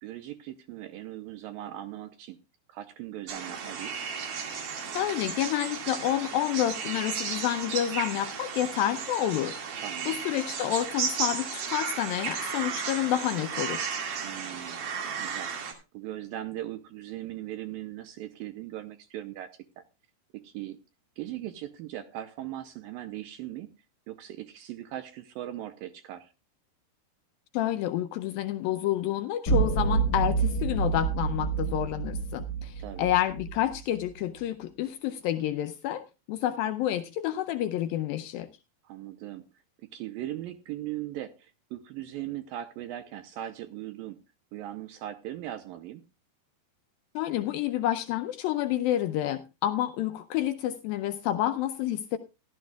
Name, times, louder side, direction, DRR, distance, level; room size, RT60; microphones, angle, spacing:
voice 1, 0.0-2.4 2.7-3.9 9.8-10.2 14.2-15.5 15.9-19.5 19.8-19.9 20.3-20.8 21.2-23.7 24.1-26.3 32.8-33.1 38.8-39.4 39.9-44.2 44.5-46.0, right 13 dB, 80° right, 10 dB, 2.2 m, -39 dB
sound 1, 3.3-15.7, right 6 dB, 60° right, 3.3 m, -34 dB
voice 2, 4.9-9.6 10.1-13.9 27.5-38.5 47.2-52.2, left 12 dB, 80° left, 8 dB, 2.1 m, -29 dB
sound 2, 29.5-33.8, right 4 dB, 45° left, 1.0 m, -28 dB
15.5 x 12.0 x 2.3 m, 0.29 s
omnidirectional pair, 4.7 m